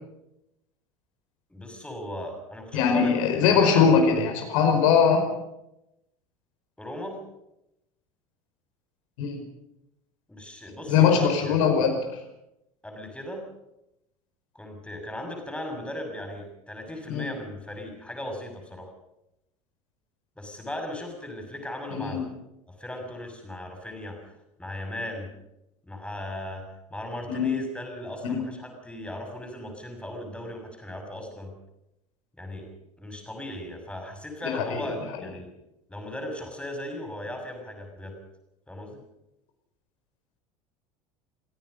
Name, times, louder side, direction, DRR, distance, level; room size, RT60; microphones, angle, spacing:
voice 1, 1.5-3.9 6.8-7.2 10.3-11.6 12.8-13.5 14.5-18.9 20.4-22.3 22.7-24.3 24.6-25.3 25.9-31.5 32.4-32.7 33.0-35.5 35.9-38.2 38.7-39.0, left 1 dB, 5° left, 4 dB, 6.6 m, -37 dB
voice 2, 2.7-5.3 9.2-9.4 10.9-11.9 17.1-17.3 21.9-22.2 27.3-27.5 28.2-28.4 34.4-35.0, left 6 dB, 60° left, 4 dB, 5.1 m, -21 dB
28.5 x 16.5 x 5.4 m, 0.86 s
figure-of-eight pair, 70°, 19 cm